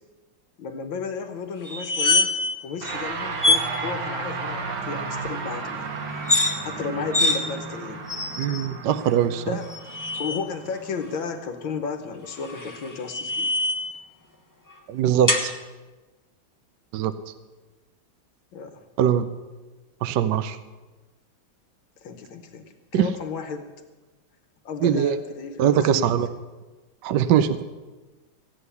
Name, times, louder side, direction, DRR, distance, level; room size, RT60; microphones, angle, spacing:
voice 1, 0.6-2.3 2.6-5.9 6.6-8.1 9.4-9.7 10.2-13.5 18.5-18.9 22.0-22.6 22.9-23.7 24.6-26.2, left 5 dB, 75° left, 8 dB, 1.7 m, -33 dB
sound 1, 1.6-2.6 2.8-3.0 3.4-3.7 6.1-6.5 7.1-7.4 8.1-8.7 9.6-10.4 12.3-13.9 15.3-15.5, left 2 dB, 15° left, 0.6 m, -24 dB
sound 2, 2.8-12.3, right 4 dB, 85° right, 2.4 m, -34 dB
voice 2, 8.4-9.6 14.9-15.5 16.9-17.1 19.0-19.3 20.0-20.6 22.9-23.1 24.8-25.2 25.6-26.3 27.0-27.6, right 9 dB, 70° right, 11 dB, 1.1 m, -21 dB
15.0 x 9.5 x 6.9 m, 1.2 s
omnidirectional pair, 2.2 m